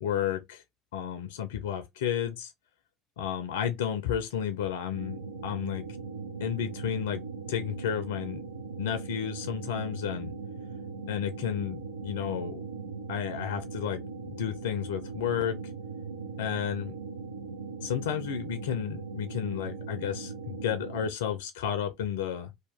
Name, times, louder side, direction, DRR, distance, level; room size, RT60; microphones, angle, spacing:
voice 1, 0.0-0.6 0.9-2.5 3.2-5.9 6.4-8.4 8.8-10.3 11.1-12.6 13.1-15.6 16.4-17.0 17.8-22.5, left 9 dB, 65° left, 0.4 m, -32 dB
sound 1, 4.9-21.1, right 4 dB, 85° right, 0.4 m, -39 dB
2.8 x 2.1 x 3.3 m
figure-of-eight pair, 65°, 0 cm